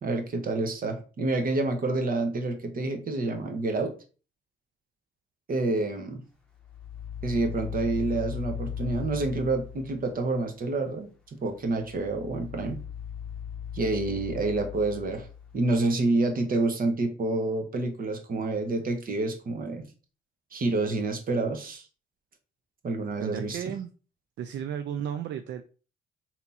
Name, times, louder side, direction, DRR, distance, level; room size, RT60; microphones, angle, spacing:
voice 1, 0.0-3.9 5.5-6.2 7.2-12.8 13.7-15.3 15.5-19.9 20.5-21.8 22.8-23.6, right 2 dB, 45° right, 1.0 m, -28 dB
sound 1, 6.6-10.3 11.6-16.0, left 8 dB, 5° left, 1.1 m, -38 dB
voice 2, 23.2-23.9 24.4-25.6, right 9 dB, 65° right, 0.4 m, -33 dB
3.4 x 2.9 x 4.1 m
cardioid pair, 90°, 20 cm